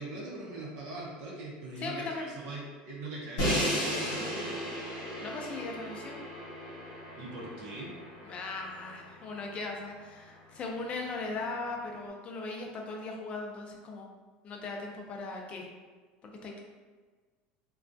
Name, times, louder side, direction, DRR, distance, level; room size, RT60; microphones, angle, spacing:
voice 1, 0.0-4.5 7.2-7.9, right 2 dB, 75° right, -4 dB, 0.7 m, -41 dB
voice 2, 1.8-2.3 5.2-6.1 8.2-14.1 14.4-15.7 16.2-16.6, left 3 dB, 30° left, 1 dB, 0.4 m, -38 dB
Crash cymbal, 3.4-9.3, equal, 80° left, 0.9 m, -35 dB
2.3 x 2.2 x 2.5 m, 1.4 s
cardioid pair, 140°, 4 cm